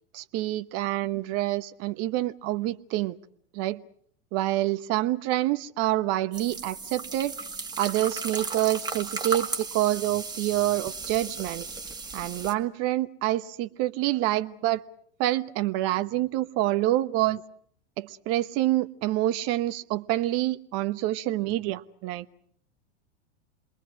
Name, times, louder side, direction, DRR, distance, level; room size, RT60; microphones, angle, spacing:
voice 1, 0.1-3.2 3.5-3.8 4.3-7.4 7.8-11.7 12.1-14.8 15.2-17.4 18.0-22.3, right 15 dB, 45° right, 1.1 m, -27 dB
sound 1, 6.3-12.5, right 4 dB, 10° right, 2.1 m, -35 dB
27.5 x 22.0 x 6.3 m
hypercardioid pair, 95°, 34 cm